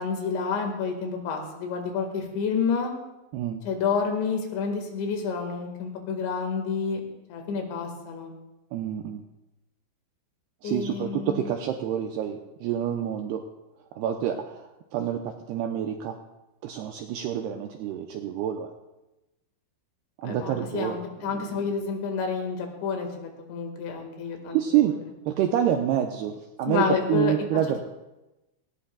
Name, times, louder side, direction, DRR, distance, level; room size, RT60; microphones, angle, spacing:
voice 1, 0.0-2.9 3.7-7.0 7.3-8.3 10.6-11.5 20.2-25.0 26.7-27.5, left 5 dB, 75° left, 3 dB, 4.0 m, -29 dB
voice 2, 8.7-9.2 10.6-13.4 14.0-16.2 16.6-18.7 20.2-21.0 21.3-21.6 24.5-25.0 25.3-27.8, right 10 dB, 90° right, 3 dB, 2.3 m, -27 dB
18.5 x 17.5 x 2.3 m, 0.99 s
omnidirectional pair, 5.4 m